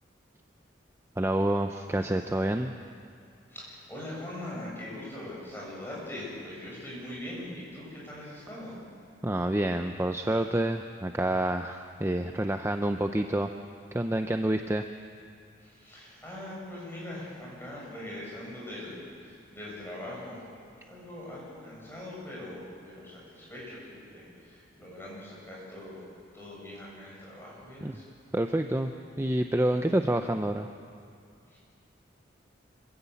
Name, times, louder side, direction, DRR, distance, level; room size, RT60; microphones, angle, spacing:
voice 1, 1.2-2.7 9.2-13.5 13.9-14.9 27.8-28.0 28.3-28.9 29.2-30.7, right 1 dB, 15° right, 6 dB, 0.6 m, -28 dB
voice 2, 3.5-8.8 15.6-20.5 20.9-26.1 26.3-28.0 31.5-31.6, left 1 dB, 10° left, -5 dB, 7.8 m, -42 dB
26.0 x 15.5 x 8.4 m, 2.4 s
head